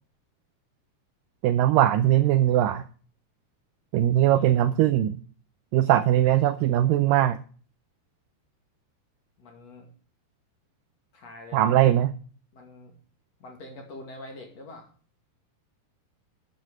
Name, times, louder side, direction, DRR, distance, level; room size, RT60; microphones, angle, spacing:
voice 1, 1.4-2.8 3.9-5.2 5.7-7.4 11.5-12.1, right 12 dB, 85° right, 11 dB, 1.9 m, -20 dB
voice 2, 4.1-4.7 9.4-9.9 11.1-11.8 12.5-12.9 13.4-14.9, left 2 dB, 45° left, 2 dB, 3.0 m, -45 dB
12.5 x 8.1 x 4.9 m, 0.41 s
omnidirectional pair, 4.6 m